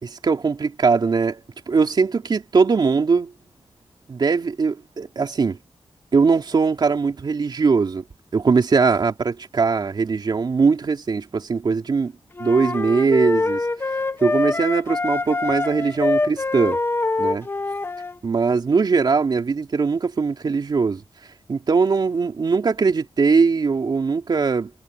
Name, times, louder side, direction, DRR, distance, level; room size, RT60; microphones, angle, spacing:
voice 1, 0.0-1.4 1.7-3.3 4.1-5.6 6.1-8.0 8.3-12.1 12.4-16.8 17.2-17.5 18.2-21.0 21.5-24.7, right 5 dB, 55° right, 3.2 m, -21 dB
sound 1, 12.4-18.2, left 3 dB, 25° left, 1.2 m, -24 dB
wide cardioid pair, 120°, 9 cm